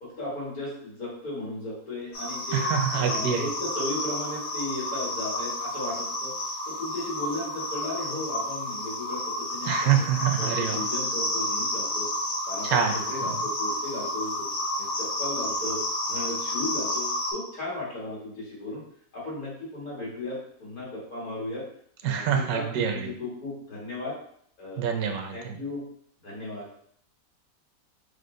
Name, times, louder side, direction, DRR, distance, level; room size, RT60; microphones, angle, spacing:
voice 1, 0.0-2.7 2.9-6.3 6.7-9.9 10.4-12.1 12.5-14.5 14.8-15.8 16.1-18.8 19.1-21.6 22.0-24.2 24.6-24.9 25.3-25.8 26.2-26.7, left 2 dB, 85° left, -7 dB, 2.3 m, -35 dB
sound 1, 2.1-17.3, left 1 dB, 65° left, 1.4 m, -30 dB
voice 2, 2.5-3.4 9.7-10.8 12.6-12.9 22.0-23.1 24.8-25.6, right 8 dB, 85° right, 5 dB, 1.1 m, -26 dB
5.1 x 2.1 x 3.7 m, 0.65 s
omnidirectional pair, 1.5 m